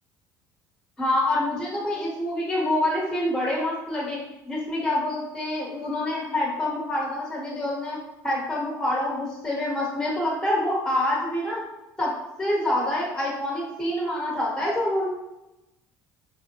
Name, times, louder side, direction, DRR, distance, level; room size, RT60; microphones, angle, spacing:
voice 1, 1.0-4.2 4.4-8.0 8.2-11.6 12.0-12.1 12.4-15.1, left 1 dB, 10° left, -5 dB, 1.1 m, -26 dB
4.9 x 2.2 x 2.9 m, 0.97 s
cardioid pair, 155°, 7 cm